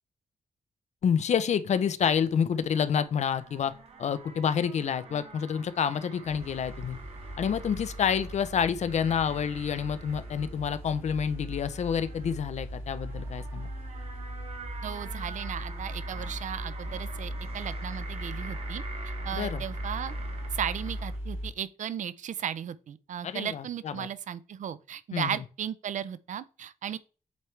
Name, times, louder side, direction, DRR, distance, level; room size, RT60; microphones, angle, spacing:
voice 1, 1.0-3.7 4.0-7.0 7.4-13.7 19.3-19.6 23.2-24.1 25.1-25.4, left 7 dB, 55° left, 0.5 m, -28 dB
sound 1, 2.2-21.2, right 4 dB, 45° right, 1.0 m, -47 dB
sound 2, 6.2-21.5, equal, 15° right, 2.8 m, -38 dB
voice 2, 14.8-18.8 19.2-20.2 20.5-27.0, right 9 dB, 65° right, 0.4 m, -35 dB
8.1 x 4.5 x 3.2 m
wide cardioid pair, 160°, 14 cm